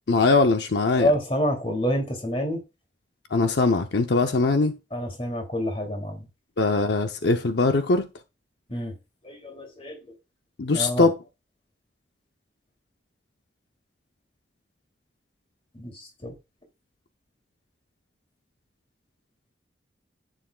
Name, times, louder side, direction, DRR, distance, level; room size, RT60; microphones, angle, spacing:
voice 1, 0.1-1.1 3.3-4.8 6.6-8.1 10.6-11.2, left 3 dB, 75° left, 0.7 m, -21 dB
voice 2, 1.0-2.6 4.9-6.2 8.7-8.9 9.2-10.0 10.7-11.1 15.7-16.3, equal, 30° left, 2.7 m, -27 dB
11.0 x 9.2 x 2.3 m
head